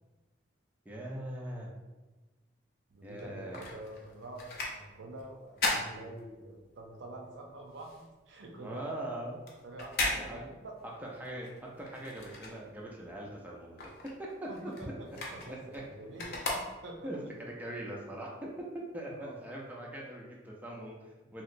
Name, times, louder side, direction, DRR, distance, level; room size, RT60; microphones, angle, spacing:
voice 1, 0.9-1.7 3.0-3.7 8.6-9.4 10.1-10.5 11.2-11.5 11.8-13.9 14.2-14.5 15.5-15.8 17.0-17.2 17.6-18.5 18.7-21.4, right 1 dB, 10° right, -3 dB, 0.4 m, -41 dB
voice 2, 2.9-9.0 9.6-10.7 14.5-17.1 19.1-19.4, right 1 dB, 80° right, 1 dB, 0.5 m, -46 dB
sound 1, 3.1-6.8 7.1-13.1 13.4-17.2 17.7-17.8, left 2 dB, 50° left, 0.6 m, -38 dB
2.9 x 2.9 x 2.5 m, 1.1 s
head